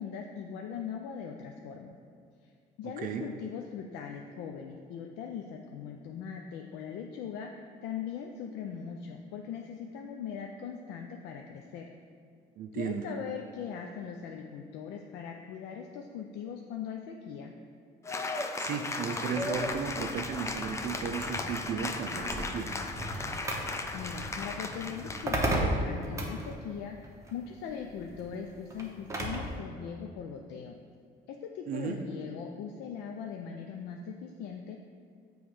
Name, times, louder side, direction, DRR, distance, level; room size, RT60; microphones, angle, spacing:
voice 1, 0.0-2.0 2.4-2.5 2.8-11.9 12.7-17.5 23.9-30.7 31.3-34.8, left 7 dB, 85° left, 2 dB, 0.4 m, -40 dB
voice 2, 12.6-13.0 18.6-22.7 31.7-32.0, right 6 dB, 55° right, 5 dB, 0.5 m, -35 dB
Cheering / Applause, 18.0-25.6, left 3 dB, 15° left, 0.4 m, -36 dB
sound 1, 19.2-26.5, left 1 dB, 50° left, 1.0 m, -46 dB
sound 2, 22.2-29.5, right 1 dB, 15° right, 0.9 m, -35 dB
7.1 x 3.1 x 4.8 m, 2.2 s
cardioid pair, 110°, 17 cm